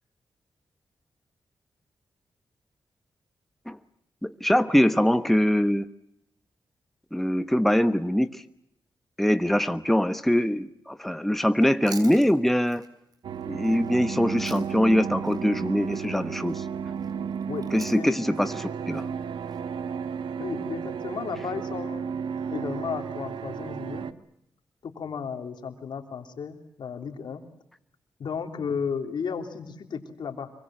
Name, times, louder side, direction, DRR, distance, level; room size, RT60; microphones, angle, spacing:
voice 1, 4.2-5.9 7.1-8.4 9.2-12.8 13.5-16.6 17.7-19.1, equal, 5° left, 11 dB, 1.1 m, -23 dB
Chewing mastication, 11.5-15.0 15.2-19.6, right 4 dB, 50° right, 3.8 m, -47 dB
sound 1, 13.2-24.1, right 7 dB, 80° right, 1.1 m, -33 dB
voice 2, 17.5-18.1 20.4-22.2 22.5-24.1 24.8-27.4 28.2-30.5, left 6 dB, 75° left, 5 dB, 3.3 m, -34 dB
25.5 x 24.0 x 7.6 m, 0.80 s
cardioid pair, 70°, 8 cm